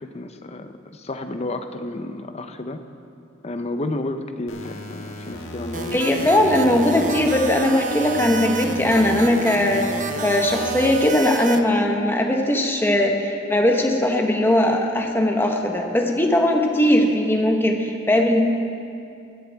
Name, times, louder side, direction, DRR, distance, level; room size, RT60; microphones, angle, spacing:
voice 1, 0.0-2.8 3.4-6.3 6.9-7.1, left 2 dB, 30° left, 7 dB, 0.6 m, -31 dB
sound 1, 4.5-7.5 7.9-10.9, equal, 80° left, 1.5 m, -36 dB
sound 2, 5.7-11.6, right 4 dB, 40° right, 0.6 m, -30 dB
voice 2, 5.9-9.9 10.2-18.4, left 1 dB, 10° left, 2 dB, 1.1 m, -19 dB
17.0 x 12.5 x 3.5 m, 2.5 s
head